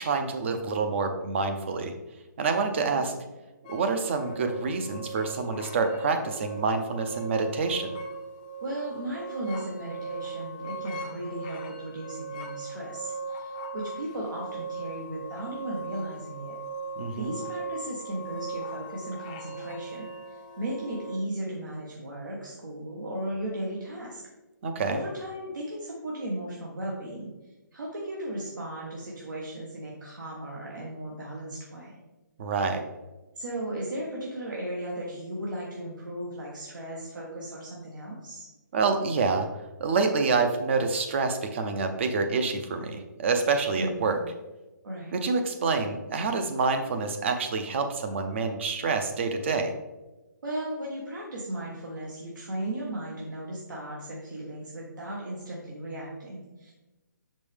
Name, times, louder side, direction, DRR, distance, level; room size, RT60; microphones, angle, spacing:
voice 1, 0.0-1.9 2.4-3.1 3.7-8.0 17.0-17.3 24.6-25.0 32.4-32.8 38.7-39.5 39.8-44.2 45.1-49.7, right 4 dB, 35° right, 6 dB, 0.7 m, -27 dB
voice 2, 2.7-3.0 8.6-16.6 17.2-24.2 24.8-27.3 27.7-32.0 33.4-38.5 43.8-44.1 44.8-45.2 50.4-56.7, right 1 dB, 75° right, -4 dB, 1.5 m, -36 dB
sound 1, 3.6-21.2, right 3 dB, 25° left, 0.5 m, -39 dB
6.3 x 5.2 x 3.5 m, 1.1 s
hypercardioid pair, 160°, 10 cm